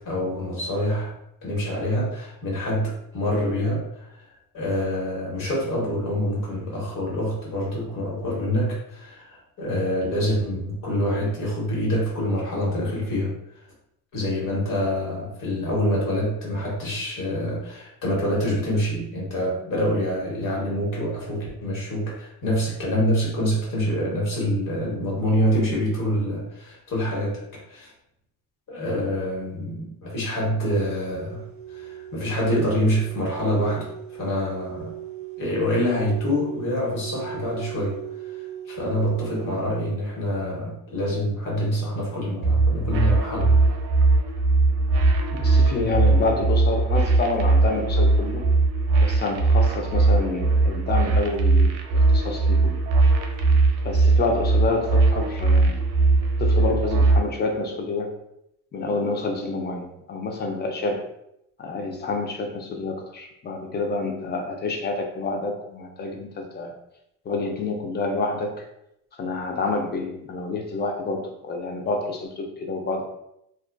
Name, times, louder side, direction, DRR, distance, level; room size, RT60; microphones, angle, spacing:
voice 1, 0.0-1.1 1.4-4.1 4.5-13.3 14.1-27.4 27.7-27.9 28.7-31.4 31.7-34.9 35.4-38.0 38.3-38.4 38.7-43.5, equal, 50° left, -4 dB, 1.2 m, -26 dB
sound 1, 30.8-39.9, right 12 dB, 50° right, 1.0 m, -38 dB
sound 2, 42.4-57.2, right 3 dB, 85° right, 0.5 m, -20 dB
voice 2, 45.3-48.4 49.0-52.8 53.8-55.8 56.4-58.1 58.7-61.1 61.6-66.7 67.2-68.7 69.2-73.0, left 3 dB, 25° left, 3 dB, 0.4 m, -28 dB
2.4 x 2.3 x 2.2 m, 0.80 s
supercardioid pair, 95°, 43 cm